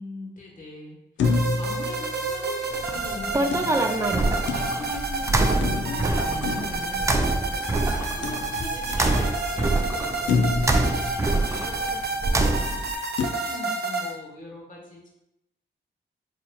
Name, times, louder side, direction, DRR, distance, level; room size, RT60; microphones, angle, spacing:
voice 1, 0.0-11.9 12.2-12.6 13.2-15.1, left 2 dB, 45° left, -3 dB, 1.3 m, -40 dB
sound 1, 1.2-2.8 3.5-5.1 5.6-7.5 8.2-9.1 9.6-9.7 10.3-12.0 13.2-13.3, left 4 dB, 75° left, 0.4 m, -29 dB
sound 2, 1.2-14.1, right 3 dB, 60° right, 0.7 m, -30 dB
sound 3, 2.7-12.9, right 2 dB, 15° right, 0.3 m, -26 dB
4.0 x 2.8 x 2.3 m, 0.85 s
cardioid pair, 70°, 19 cm